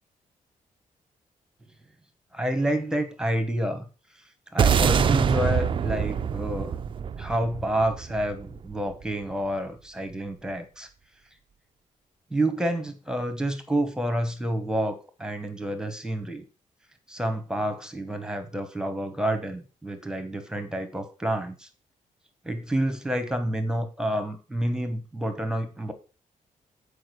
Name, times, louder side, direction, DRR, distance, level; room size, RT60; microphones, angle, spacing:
voice 1, 2.3-3.9 4.5-6.7 7.2-10.9 12.3-16.4 17.1-21.7 22.4-25.9, right 1 dB, 5° right, 7 dB, 1.0 m, -29 dB
sound 1, 4.6-9.0, right 7 dB, 35° right, 0.4 m, -25 dB
8.0 x 4.9 x 6.6 m, 0.34 s
wide cardioid pair, 165°, 14 cm